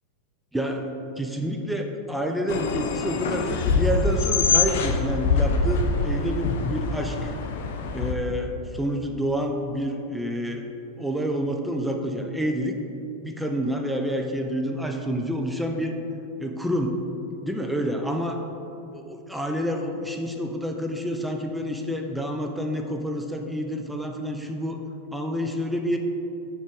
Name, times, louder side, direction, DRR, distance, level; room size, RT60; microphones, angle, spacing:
voice 1, 0.5-7.3 7.9-10.7 11.0-12.7 13.2-16.0 16.4-17.0 17.4-18.4 18.9-24.8 25.1-26.0, equal, 5° right, 2 dB, 0.4 m, -28 dB
sound 1, 2.5-8.1, left 4 dB, 55° left, 0.5 m, -24 dB
6.2 x 3.5 x 5.2 m, 2.8 s
figure-of-eight pair, 90°, 0 cm